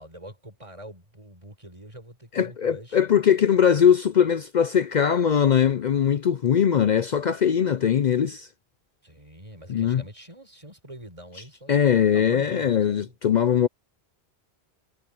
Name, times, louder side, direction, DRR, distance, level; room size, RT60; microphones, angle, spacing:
voice 1, 0.0-3.1 9.0-13.1, right 1 dB, 30° right, 5.3 m, -44 dB
voice 2, 2.3-8.5 9.7-10.0 11.7-13.7, left 8 dB, 55° left, 0.6 m, -21 dB
omnidirectional pair, 1.0 m